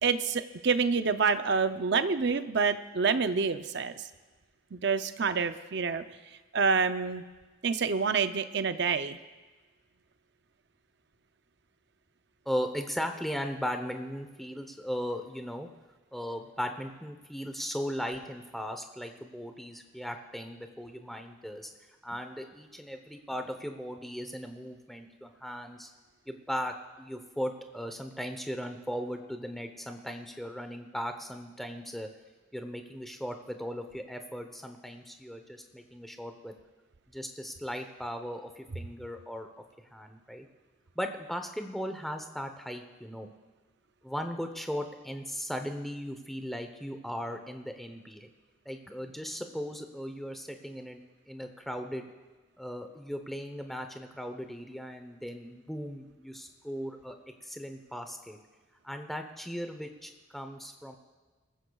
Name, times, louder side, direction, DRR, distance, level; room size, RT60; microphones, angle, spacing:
voice 1, 0.0-4.0 4.7-6.0 6.5-7.2 7.6-9.2, right 5 dB, 55° right, 10 dB, 0.6 m, -27 dB
voice 2, 12.5-15.7 16.1-21.7 22.0-25.9 26.3-32.1 32.5-36.5 37.1-39.5 39.9-40.5 41.0-43.3 44.0-48.3 48.7-51.0 51.3-52.1 52.6-57.2 57.4-58.4 58.8-61.0, equal, ahead, 5 dB, 0.8 m, -37 dB
24.5 x 14.5 x 2.4 m, 1.3 s
head